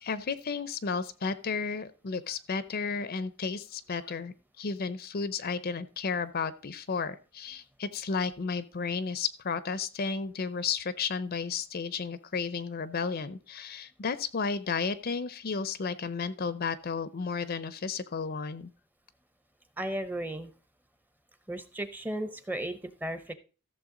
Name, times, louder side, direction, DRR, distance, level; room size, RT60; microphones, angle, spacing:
voice 1, 0.0-18.7, left 5 dB, 45° left, 14 dB, 0.6 m, -33 dB
voice 2, 19.8-20.5 21.5-23.3, right 1 dB, 10° right, 10 dB, 0.8 m, -35 dB
14.5 x 6.8 x 3.8 m, 0.34 s
head